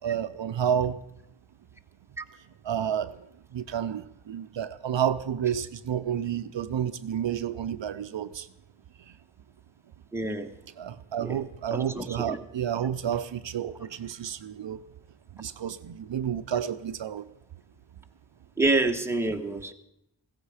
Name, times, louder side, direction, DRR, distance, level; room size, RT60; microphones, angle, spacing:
voice 1, 0.0-1.0 2.6-8.5 9.0-9.2 10.8-14.8 15.3-17.3, right 9 dB, 70° right, 12 dB, 0.6 m, -30 dB
voice 2, 10.1-10.5 11.2-11.4 11.7-12.4 18.6-19.7, right 2 dB, 5° right, 4 dB, 1.1 m, -27 dB
16.0 x 14.5 x 4.9 m, 0.80 s
wide cardioid pair, 75°, 46 cm